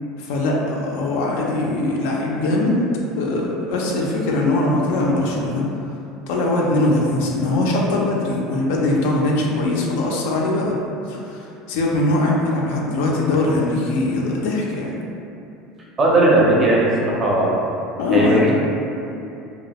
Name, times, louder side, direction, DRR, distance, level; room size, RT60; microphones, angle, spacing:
voice 1, 0.2-2.8 3.2-5.6 6.3-10.8 11.1-15.0 18.0-18.4, left 2 dB, 80° left, -2 dB, 0.4 m, -21 dB
voice 2, 16.0-17.5 18.1-18.5, right 1 dB, 25° right, -4 dB, 0.4 m, -17 dB
2.2 x 2.0 x 2.8 m, 2.7 s
cardioid pair, 150°, 0 cm